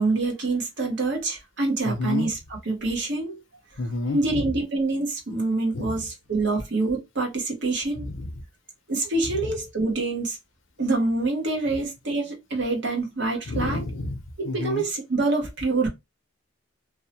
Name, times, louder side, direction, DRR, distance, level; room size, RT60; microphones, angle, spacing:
voice 1, 0.0-2.3 2.7-3.4 4.1-8.1 8.9-10.4 10.8-13.8 14.4-15.9, right 3 dB, 55° right, 0.8 m, -26 dB
voice 2, 1.8-2.3 3.8-4.5 5.7-6.1 8.0-8.3 9.4-9.5 13.5-14.2 14.4-14.8, left 2 dB, 65° left, 0.6 m, -30 dB
2.7 x 2.0 x 2.7 m
head